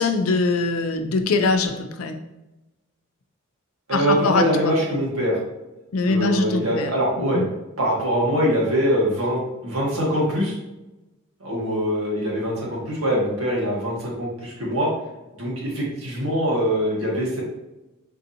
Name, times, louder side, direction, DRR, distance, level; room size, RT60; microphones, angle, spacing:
voice 1, 0.0-2.2 3.9-4.7 5.9-6.9 7.2-7.4, left 3 dB, 75° left, 6 dB, 0.4 m, -22 dB
voice 2, 3.9-5.4 6.0-7.4 7.8-10.5 11.4-14.9 15.3-17.4, equal, 85° right, -3 dB, 1.3 m, -23 dB
4.4 x 2.6 x 2.7 m, 0.99 s
head